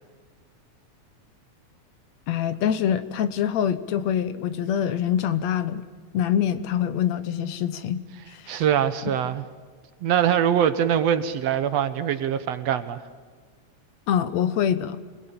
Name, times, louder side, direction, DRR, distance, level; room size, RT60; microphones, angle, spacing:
voice 1, 2.3-5.8 6.1-8.0 8.3-8.6 14.1-15.0, left 9 dB, 70° left, 13 dB, 2.2 m, -25 dB
voice 2, 8.5-9.4 10.0-13.0, right 9 dB, 65° right, 12 dB, 2.1 m, -23 dB
27.5 x 21.0 x 8.8 m, 1.5 s
omnidirectional pair, 3.3 m